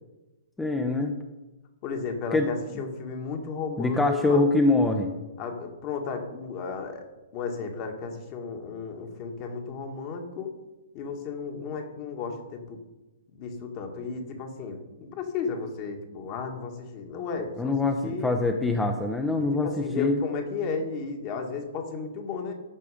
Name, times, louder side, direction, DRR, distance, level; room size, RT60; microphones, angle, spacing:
voice 1, 0.6-1.1 2.3-2.5 3.8-5.1 17.6-20.2, left 2 dB, 10° left, 4 dB, 0.7 m, -24 dB
voice 2, 1.8-4.4 5.4-7.1 7.3-10.5 10.9-12.8 13.3-18.4 19.6-22.5, left 5 dB, 40° left, 4 dB, 1.7 m, -34 dB
14.0 x 4.8 x 5.0 m, 1.1 s
hypercardioid pair, 125°, 0 cm